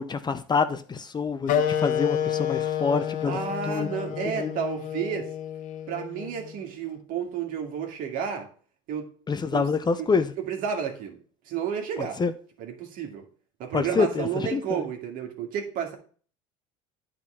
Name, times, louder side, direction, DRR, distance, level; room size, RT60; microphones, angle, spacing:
voice 1, 0.0-3.4 3.7-3.9 4.4-4.5 9.3-10.3 12.0-12.3 13.7-14.8, left 5 dB, 25° left, 0.8 m, -26 dB
Wind instrument woodwind instrument, 1.5-6.6, left 9 dB, 55° left, 1.0 m, -29 dB
voice 2, 3.3-5.3 5.9-8.5 8.9-9.1 9.5-9.7 10.0-10.1 10.4-11.2 11.5-12.2 12.6-13.2 13.6-16.0, right 7 dB, 60° right, 2.1 m, -31 dB
9.6 x 4.2 x 5.6 m
hypercardioid pair, 75°, 16 cm